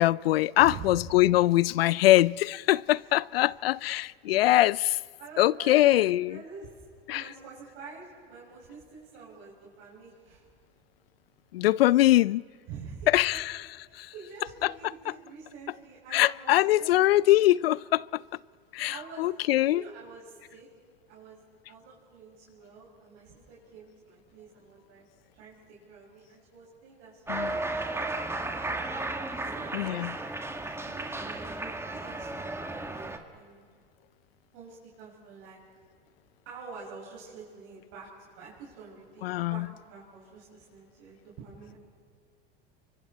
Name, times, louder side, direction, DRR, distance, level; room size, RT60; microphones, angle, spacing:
voice 1, 0.0-5.0 5.4-6.4 7.1-7.2 11.5-12.4 13.1-13.6 13.9-14.1 14.6-14.7 15.1-15.2 16.1-18.2 18.7-19.8 27.3-27.6 29.7-30.2 39.2-39.7, left 15 dB, 85° left, 0.5 m, -23 dB
voice 2, 0.6-0.9 5.2-6.0 6.3-10.5 12.7-13.4 13.9-16.9 18.9-19.3 19.6-20.7 21.1-25.0 25.3-28.8 29.1-30.0 30.4-32.9 33.3-33.6 34.5-35.6 36.4-38.1 38.3-41.8, right 5 dB, 60° right, 6.4 m, -47 dB
Cheering, 27.3-33.2, right 2 dB, 10° right, 1.8 m, -34 dB
29.5 x 24.5 x 4.2 m
hypercardioid pair, 90°, 29 cm